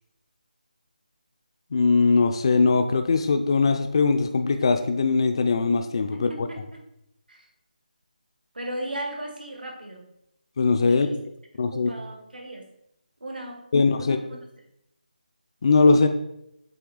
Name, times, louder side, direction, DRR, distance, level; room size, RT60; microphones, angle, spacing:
voice 1, 1.7-6.5 10.6-11.1 11.6-11.9 13.7-14.2 15.6-16.1, left 4 dB, 35° left, 7 dB, 0.4 m, -20 dB
voice 2, 6.1-6.8 7.3-7.5 8.5-10.1 10.9-11.2 11.7-12.7 13.2-13.6 13.9-14.4, right 1 dB, 85° right, 2 dB, 1.7 m, -36 dB
7.7 x 3.2 x 3.9 m, 0.81 s
figure-of-eight pair, 170°, 5 cm